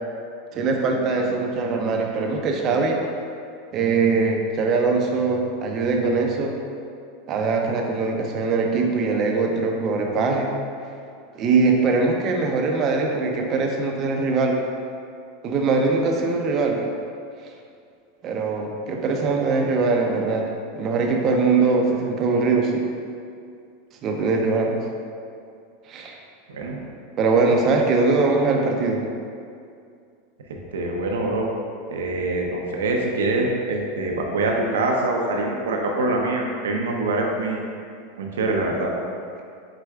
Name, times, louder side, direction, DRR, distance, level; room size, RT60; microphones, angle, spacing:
voice 1, 0.5-3.0 3.7-6.5 7.3-10.5 11.4-14.6 15.4-16.8 18.2-22.9 24.0-24.8 25.9-26.2 27.2-29.0, right 4 dB, 40° right, 2 dB, 0.5 m, -22 dB
voice 2, 26.5-26.8 30.5-31.5 31.9-37.6 38.2-38.9, right 2 dB, 85° right, 0 dB, 0.5 m, -24 dB
4.7 x 4.0 x 2.3 m, 2.3 s
hypercardioid pair, 110°, 0 cm